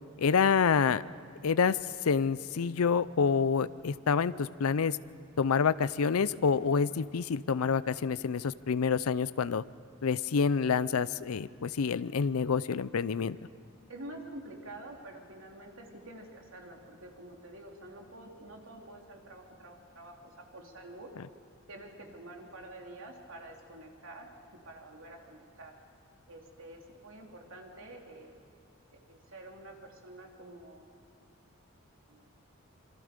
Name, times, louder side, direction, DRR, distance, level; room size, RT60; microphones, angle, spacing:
voice 1, 0.2-1.0 1.4-5.0 5.4-9.6 10.0-13.4, left 6 dB, 85° left, 16 dB, 0.5 m, -27 dB
voice 2, 13.9-21.1 21.7-24.3 24.6-25.7 26.3-28.3 28.9-31.0 32.1-32.2, right 1 dB, 70° right, 1 dB, 3.2 m, -48 dB
27.0 x 23.0 x 5.2 m, 2.6 s
head